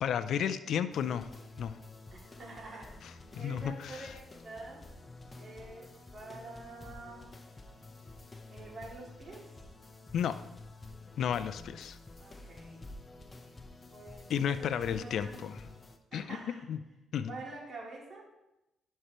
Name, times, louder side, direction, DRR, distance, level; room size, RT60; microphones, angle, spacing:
voice 1, 0.0-1.3 1.6-1.8 3.3-4.1 10.1-10.4 11.2-12.0 14.3-15.6 16.1-16.4 16.7-16.8 17.1-17.3, left 8 dB, 70° left, 12 dB, 0.4 m, -32 dB
sound 1, 0.9-16.0, left 2 dB, 25° left, 0.9 m, -50 dB
voice 2, 2.1-4.8 5.4-7.3 8.5-9.4 12.2-12.9 13.9-15.4 16.1-16.7 17.2-18.2, right 2 dB, 45° right, -2 dB, 2.6 m, -47 dB
11.5 x 5.6 x 3.1 m, 0.94 s
cardioid pair, 80°, 0 cm